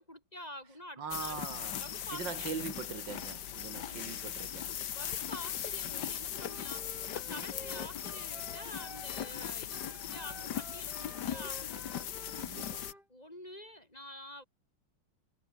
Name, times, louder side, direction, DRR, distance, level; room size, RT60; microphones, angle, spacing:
voice 1, 0.0-1.4 1.8-2.5 3.8-4.1 4.9-11.8 13.1-14.4, left 1 dB, 20° left, 6.8 m, -48 dB
voice 2, 1.0-1.8 2.1-4.7 12.4-12.9, right 6 dB, 85° right, 2.9 m, -41 dB
sound 1, 1.1-12.9, left 10 dB, 70° left, 1.7 m, -39 dB
Wind instrument woodwind instrument, 6.3-9.4 9.7-13.1, equal, ahead, 3.7 m, -52 dB
omnidirectional pair, 1.9 m